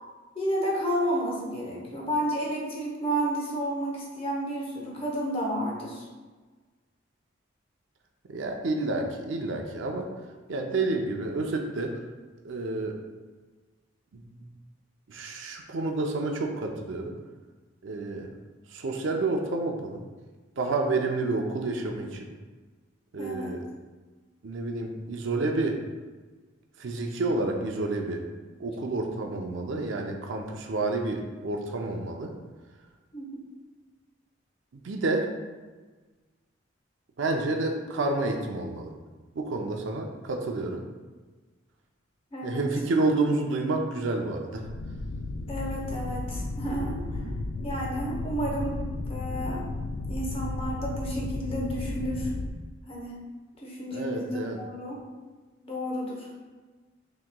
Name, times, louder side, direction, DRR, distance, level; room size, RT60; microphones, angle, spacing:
voice 1, 0.3-6.1 23.2-23.6 33.1-33.3 42.3-42.6 45.5-47.2 47.6-48.8 49.1-49.7 50.1-52.3 52.9-53.1 53.6-55.0 55.6-56.3, equal, 30° left, -3 dB, 0.8 m, -31 dB
voice 2, 8.3-10.1 10.5-12.0 12.4-13.0 14.1-14.5 15.1-17.1 17.8-18.3 18.7-20.0 20.6-22.3 23.1-23.6 24.4-25.8 26.8-28.3 28.6-32.3 34.7-35.3 37.2-38.9 39.3-40.8 42.4-44.7 47.1-47.4 53.9-54.6, right 2 dB, 65° right, 3 dB, 0.5 m, -29 dB
sound 1, 44.6-52.5, left 2 dB, 75° left, 0.4 m, -34 dB
6.0 x 3.0 x 2.2 m, 1.3 s
head